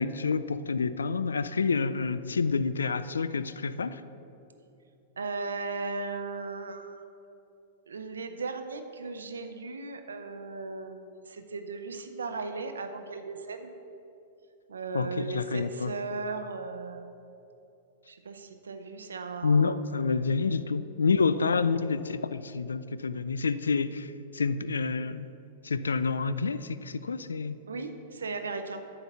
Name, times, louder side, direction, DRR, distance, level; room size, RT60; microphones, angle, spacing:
voice 1, 0.0-4.0 14.9-15.9 19.4-25.3 25.6-27.6, left 4 dB, 85° left, 14 dB, 0.3 m, -28 dB
voice 2, 5.2-7.0 7.9-13.7 14.7-17.1 18.1-19.8 21.4-21.5 27.7-28.8, right 4 dB, 80° right, 7 dB, 0.7 m, -37 dB
9.2 x 4.0 x 7.2 m, 2.8 s
hypercardioid pair, 105°, 0 cm